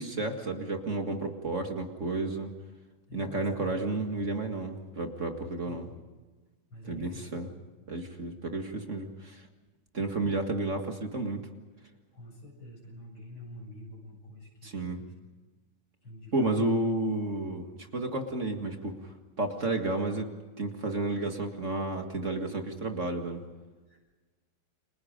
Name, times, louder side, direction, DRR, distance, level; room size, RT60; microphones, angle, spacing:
voice 1, 0.0-2.5 3.1-5.9 6.8-7.5 7.9-9.4 9.9-11.4 14.6-15.0 16.3-19.0 19.4-20.3 20.6-23.4, right 2 dB, 40° right, 4 dB, 2.1 m, -31 dB
voice 2, 3.1-3.9 5.7-5.9 6.7-7.5 12.1-15.1 16.0-16.8 23.9-24.0, left 1 dB, 85° left, -1 dB, 8.8 m, -47 dB
30.0 x 25.5 x 5.2 m, 1.3 s
omnidirectional pair, 2.2 m